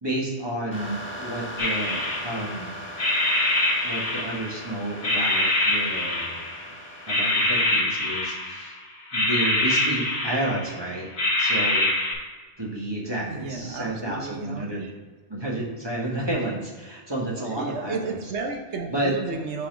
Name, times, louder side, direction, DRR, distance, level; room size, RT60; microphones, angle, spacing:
voice 1, 0.0-2.7 3.8-6.3 7.1-8.7 9.1-11.1 11.4-11.9 12.6-14.9 15.3-18.2 18.9-19.1, right 1 dB, 25° right, -4 dB, 1.3 m, -30 dB
sound 1, 0.7-7.8, equal, 10° left, 1.4 m, -39 dB
sound 2, 1.6-2.6 3.0-4.6 5.0-6.7 7.1-8.7 9.1-10.8 11.2-12.1, left 1 dB, 80° left, 1.7 m, -24 dB
voice 2, 13.3-14.9 17.6-19.7, right 4 dB, 80° right, 4 dB, 1.1 m, -33 dB
5.4 x 4.1 x 5.1 m, 1.4 s
omnidirectional pair, 1.1 m